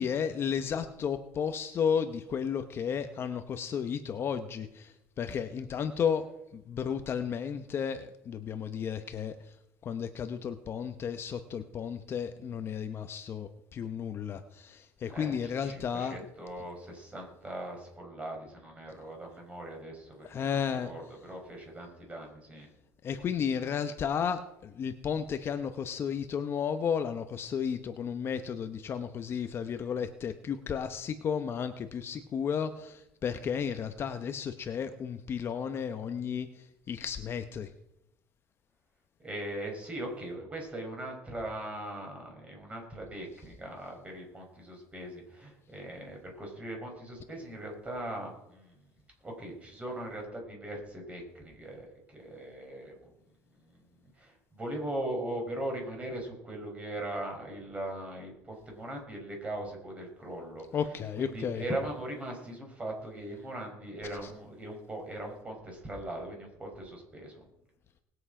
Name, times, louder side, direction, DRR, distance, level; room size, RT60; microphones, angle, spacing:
voice 1, 0.0-9.3 9.8-16.2 20.2-20.9 23.0-37.7 60.7-61.6, left 7 dB, 40° left, 8 dB, 0.8 m, -33 dB
voice 2, 15.1-22.7 39.2-48.8 49.2-51.9 52.1-53.0 53.6-53.8 54.2-60.6 61.2-67.4, right 1 dB, 20° right, 1 dB, 4.5 m, -40 dB
20.0 x 8.0 x 4.9 m, 0.87 s
cardioid pair, 140°, 7 cm